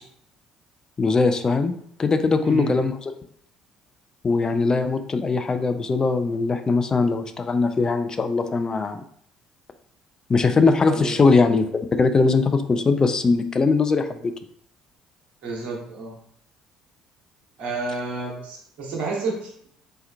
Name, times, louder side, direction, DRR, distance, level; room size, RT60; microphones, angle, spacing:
voice 1, 1.0-1.7 2.0-3.1 4.2-9.0 10.3-14.3, left 4 dB, 25° left, 8 dB, 0.3 m, -21 dB
voice 2, 2.4-2.8 10.9-11.2 15.4-16.1 17.6-19.7, right 3 dB, 55° right, -3 dB, 1.1 m, -30 dB
3.3 x 2.9 x 2.2 m, 0.66 s
figure-of-eight pair, 50°, 3 cm